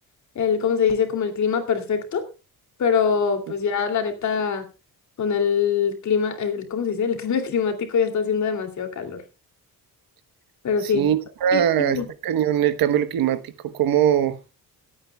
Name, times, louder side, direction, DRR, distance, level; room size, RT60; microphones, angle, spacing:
voice 1, 0.3-2.3 2.8-4.7 5.2-9.2 10.6-11.1 11.5-12.1, left 6 dB, 55° left, 2.8 m, -23 dB
voice 2, 10.9-13.4 13.8-14.4, right 10 dB, 80° right, 1.2 m, -21 dB
26.5 x 8.8 x 2.3 m
cardioid pair, 140°, 35 cm